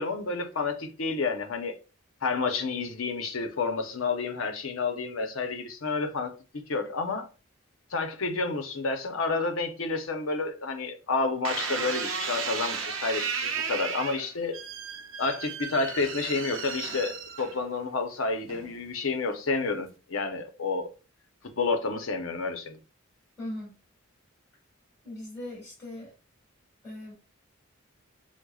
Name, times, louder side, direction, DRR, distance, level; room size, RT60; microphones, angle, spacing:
voice 1, 0.0-1.8 2.2-6.3 6.7-7.3 7.9-14.6 15.2-20.9 21.6-22.8, left 3 dB, 90° left, 0.7 m, -30 dB
sound 1, 11.4-17.8 18.5-19.0, right 6 dB, 75° right, 0.6 m, -34 dB
voice 2, 23.4-23.7 25.0-26.1 26.8-27.1, left 1 dB, 20° left, 1.8 m, -39 dB
6.2 x 2.2 x 2.3 m
head